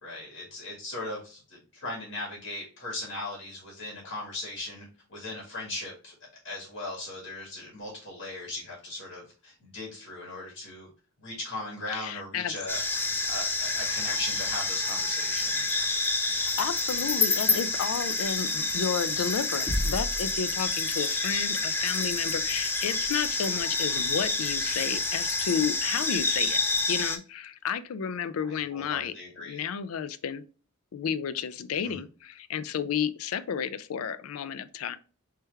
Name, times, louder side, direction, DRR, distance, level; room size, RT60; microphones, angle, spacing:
voice 1, 0.0-6.1 6.4-10.9 11.2-12.8 13.3-15.9 28.4-29.6 31.8-32.0, left 2 dB, 60° left, 1.8 m, -38 dB
voice 2, 11.9-12.5 16.3-26.6 26.9-30.4 30.9-35.0, left 7 dB, 85° left, 0.4 m, -32 dB
sound 1, 12.7-27.2, left 3 dB, 10° left, 0.4 m, -28 dB
3.3 x 3.2 x 3.3 m
head